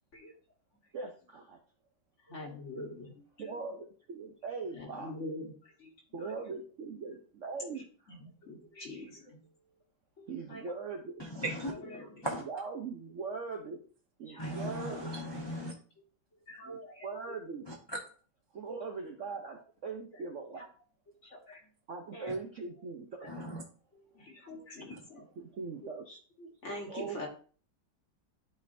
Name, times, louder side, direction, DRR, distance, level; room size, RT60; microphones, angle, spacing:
voice 1, 0.9-1.6 3.4-5.2 6.1-8.1 10.3-11.2 12.4-13.8 14.2-15.1 16.6-17.7 18.5-20.6 21.9-23.3 25.4-26.1 26.9-27.3, right 4 dB, 55° right, 3 dB, 0.8 m, -40 dB
voice 2, 2.3-2.9 3.4-3.5 4.7-5.5 8.2-9.4 10.2-10.6 11.9-12.1 14.3-14.6 16.5-17.1 21.3-21.6 22.1-22.3 24.2-25.2 26.6-27.3, left 1 dB, 40° left, 1 dB, 1.6 m, -44 dB
voice 3, 11.2-11.7 12.2-12.4 14.4-15.7 17.7-18.0 23.3-23.6 24.9-25.0, equal, 20° left, -3 dB, 0.8 m, -37 dB
11.5 x 4.4 x 2.6 m, 0.42 s
omnidirectional pair, 2.0 m